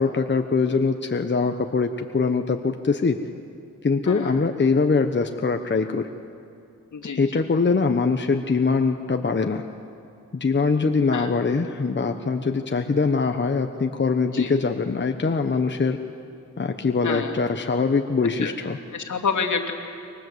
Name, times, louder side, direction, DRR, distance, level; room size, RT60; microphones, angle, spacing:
voice 1, 0.0-3.2 3.8-6.1 7.0-9.6 10.3-16.0 16.6-18.8, left 4 dB, 35° left, 6 dB, 1.2 m, -23 dB
voice 2, 4.1-4.5 6.9-7.4 11.1-11.3 14.3-14.5 17.0-17.4 18.2-18.5 18.9-19.7, left 5 dB, 70° left, 3 dB, 2.8 m, -28 dB
29.5 x 24.5 x 8.1 m, 2.6 s
wide cardioid pair, 90°, 31 cm